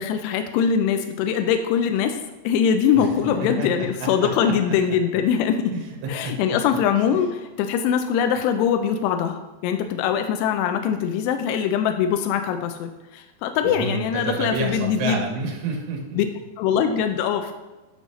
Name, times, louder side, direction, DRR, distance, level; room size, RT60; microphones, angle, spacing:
voice 1, 0.0-2.2 2.4-5.7 6.1-7.3 7.6-15.2 16.2-16.3 16.6-17.5, left 8 dB, 85° left, 7 dB, 2.7 m, -22 dB
voice 2, 2.9-3.7 4.0-4.7 5.7-6.6 7.1-7.2 13.6-16.2, right 3 dB, 80° right, 0 dB, 3.2 m, -30 dB
9.6 x 5.4 x 3.2 m, 1.1 s
omnidirectional pair, 4.8 m